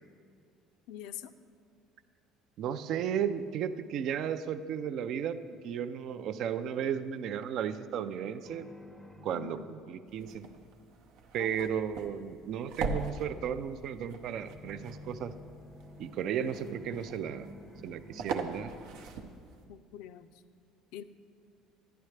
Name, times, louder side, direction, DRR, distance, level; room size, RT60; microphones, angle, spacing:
voice 1, 0.9-1.3 9.3-9.7 11.4-11.7 19.7-20.3 20.9-21.0, left 11 dB, 70° left, 12 dB, 0.4 m, -44 dB
voice 2, 2.6-5.4 5.6-8.7 9.2-10.4 11.3-15.3 16.0-17.5 17.8-18.7, right 8 dB, 50° right, 12 dB, 0.4 m, -34 dB
sound 1, 8.4-10.7 14.3-18.8, left 2 dB, ahead, 0.6 m, -51 dB
sound 2, 10.1-19.6, right 4 dB, 80° right, 0.7 m, -42 dB
12.0 x 10.0 x 3.2 m, 2.3 s
cardioid pair, 155°, 0 cm